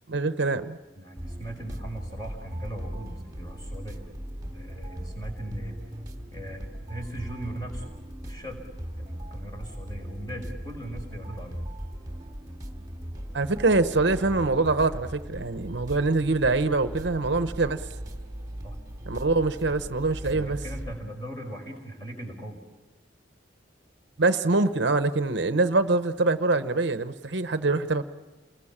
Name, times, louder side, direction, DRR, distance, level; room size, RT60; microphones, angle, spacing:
voice 1, 0.1-0.8 13.3-17.8 19.1-20.6 24.2-28.0, right 3 dB, 65° right, 0.9 m, -24 dB
voice 2, 1.0-4.0 4.4-5.7 6.3-7.9 8.2-8.6 9.0-11.6 18.6-18.8 20.2-22.6, right 1 dB, 20° left, 5.4 m, -39 dB
sound 1, 1.2-20.9, equal, 20° right, 2.5 m, -38 dB
29.0 x 21.5 x 7.3 m
head